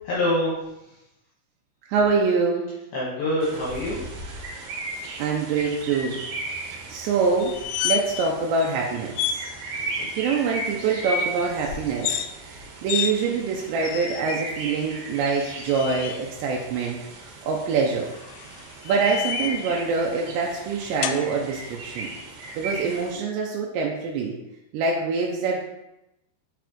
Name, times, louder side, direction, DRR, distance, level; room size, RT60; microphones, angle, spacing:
voice 1, 0.1-1.0 2.9-4.0 10.0-10.1, left 1 dB, 65° left, -7 dB, 2.7 m, -26 dB
voice 2, 1.9-2.8 5.2-6.2 6.5-7.6 7.8-9.4 9.8-18.1 18.8-22.1 22.6-24.3 24.7-25.6, right 4 dB, 85° right, -1 dB, 2.6 m, -25 dB
sound 1, 3.4-23.1, right 2 dB, 70° right, 2.5 m, -36 dB
sound 2, 7.4-8.3 8.6-8.7 9.1-9.4 11.9-12.3 12.9-13.1 13.8-14.4 15.4-16.2 18.1-19.7 21.0-21.2, left 10 dB, 85° left, 2.9 m, -29 dB
7.1 x 6.0 x 3.0 m, 0.91 s
omnidirectional pair, 5.6 m